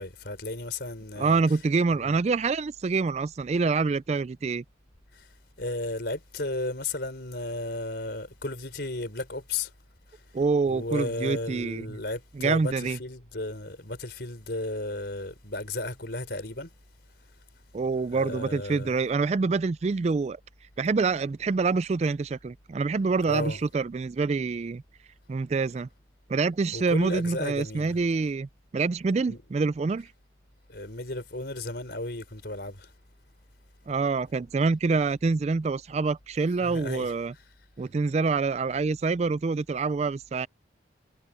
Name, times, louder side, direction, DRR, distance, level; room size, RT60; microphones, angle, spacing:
voice 1, 0.0-1.4 1.9-2.2 5.1-5.3 5.6-9.7 10.7-16.7 18.1-19.0 23.3-23.6 26.7-28.0 29.3-29.4 30.7-32.9 36.6-37.1, left 2 dB, 60° left, 4.6 m, -34 dB
voice 2, 1.2-4.6 10.3-11.9 12.4-13.0 17.7-20.4 20.8-24.8 25.3-25.9 26.3-28.5 28.7-30.1 33.9-37.3 37.8-40.5, right 4 dB, 35° right, 0.3 m, -26 dB
head